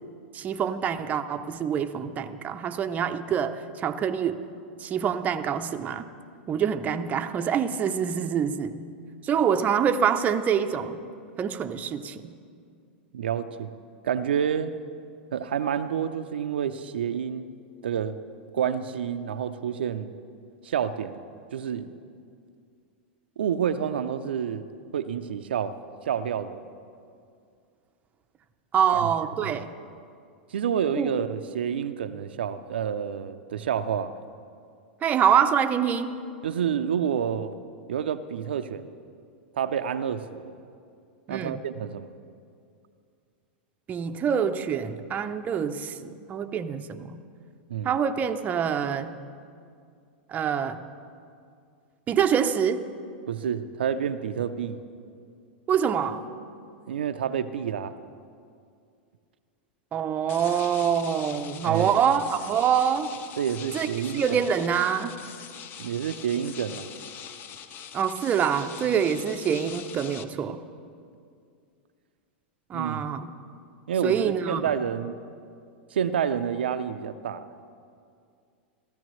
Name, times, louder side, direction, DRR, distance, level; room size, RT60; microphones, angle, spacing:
voice 1, 0.3-4.4 4.8-6.0 6.5-8.8 9.2-11.0 11.4-12.3 28.7-29.7 30.9-31.1 35.0-36.1 41.3-41.6 43.9-47.2 47.8-49.1 50.3-50.8 52.1-52.8 55.7-56.2 59.9-63.1 63.7-63.9 64.1-65.2 67.9-70.6 72.7-73.3 74.0-74.6, right 8 dB, 30° right, 8 dB, 0.6 m, -25 dB
voice 2, 13.1-13.7 14.0-14.7 15.3-17.4 17.8-18.2 18.5-20.1 20.6-21.2 21.5-21.9 23.4-24.7 24.9-25.8 26.1-26.6 28.9-29.1 29.4-29.6 30.5-34.2 36.4-37.5 37.9-38.9 39.5-40.5 41.3-42.1 47.7-48.0 53.3-54.8 56.9-57.9 61.6-62.0 63.4-64.4 65.8-66.9 72.7-73.0 73.9-75.2 75.9-77.4, right 8 dB, 80° right, 9 dB, 0.5 m, -29 dB
sound 1, 60.3-70.2, left 8 dB, 40° left, 0.7 m, -43 dB
16.0 x 13.5 x 3.1 m, 2.3 s
hypercardioid pair, 105°, 6 cm